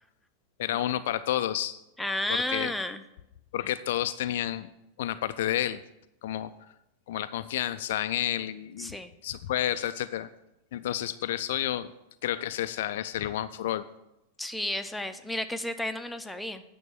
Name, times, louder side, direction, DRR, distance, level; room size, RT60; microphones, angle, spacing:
voice 1, 0.6-1.8 2.3-2.7 3.5-4.7 5.0-5.8 6.2-6.5 7.1-9.0 9.2-10.3 10.7-11.9 12.2-13.8, left 12 dB, 55° left, 12 dB, 0.4 m, -30 dB
voice 2, 2.0-3.0 8.8-9.1 14.4-16.6, left 1 dB, 5° left, 7 dB, 0.7 m, -32 dB
9.3 x 6.2 x 6.7 m, 0.87 s
figure-of-eight pair, 90°, 0 cm